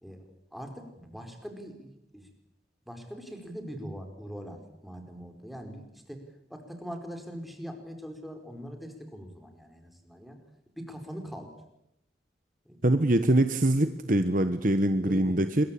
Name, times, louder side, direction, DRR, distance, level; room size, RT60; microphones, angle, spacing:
voice 1, 0.0-2.3 2.9-6.2 6.5-10.4 10.8-11.5 12.6-12.8 15.0-15.4, equal, ahead, 5 dB, 4.7 m, -42 dB
voice 2, 12.8-15.6, right 1 dB, 50° right, 10 dB, 1.3 m, -24 dB
27.0 x 22.5 x 8.7 m, 0.84 s
head